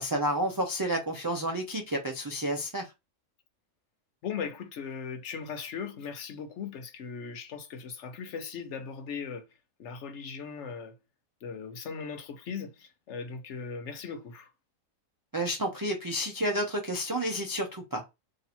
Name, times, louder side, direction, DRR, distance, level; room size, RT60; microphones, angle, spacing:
voice 1, 0.0-2.9 15.3-18.0, equal, 30° right, 0.4 m, -30 dB
voice 2, 4.2-9.4 9.8-10.9 11.4-14.5, left 6 dB, 65° left, 0.9 m, -38 dB
3.0 x 2.8 x 4.1 m
omnidirectional pair, 1.4 m